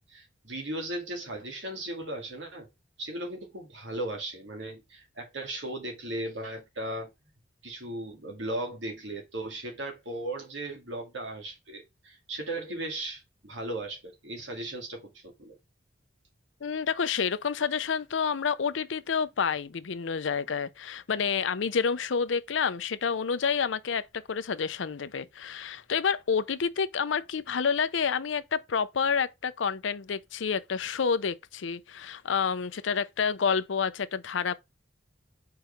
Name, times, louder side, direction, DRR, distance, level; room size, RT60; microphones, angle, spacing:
voice 1, 0.1-2.7 3.0-7.1 7.6-15.6, right 1 dB, 75° right, 2.1 m, -37 dB
voice 2, 16.6-34.5, left 6 dB, 80° left, 0.5 m, -29 dB
4.6 x 4.6 x 5.1 m
head